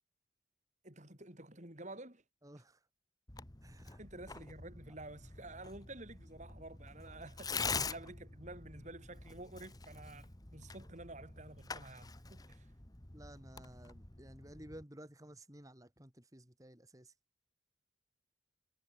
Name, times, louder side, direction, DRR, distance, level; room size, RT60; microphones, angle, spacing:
voice 1, 0.8-2.2 4.0-12.7, right 2 dB, 35° right, 4.7 m, -51 dB
voice 2, 2.4-2.9 3.6-4.0 13.1-17.1, right 1 dB, 15° right, 3.2 m, -55 dB
Tearing, 3.3-14.8, left 4 dB, 20° left, 1.3 m, -45 dB
head